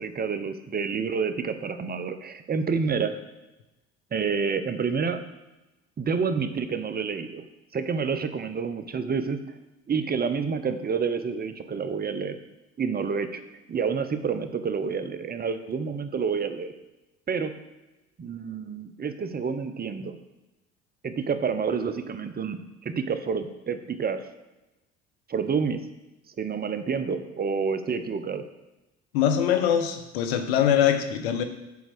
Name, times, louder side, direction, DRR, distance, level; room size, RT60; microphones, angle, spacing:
voice 1, 0.0-3.1 4.1-5.2 6.0-7.4 7.7-9.6 9.9-12.4 12.8-13.4 13.7-16.7 17.3-17.5 18.2-20.2 21.0-24.3 25.3-25.8 26.3-28.4, right 5 dB, 30° right, 10 dB, 0.8 m, -28 dB
voice 2, 29.1-31.4, left 9 dB, 85° left, 7 dB, 0.8 m, -23 dB
7.1 x 4.6 x 6.1 m, 1.0 s
hypercardioid pair, 65°, 30 cm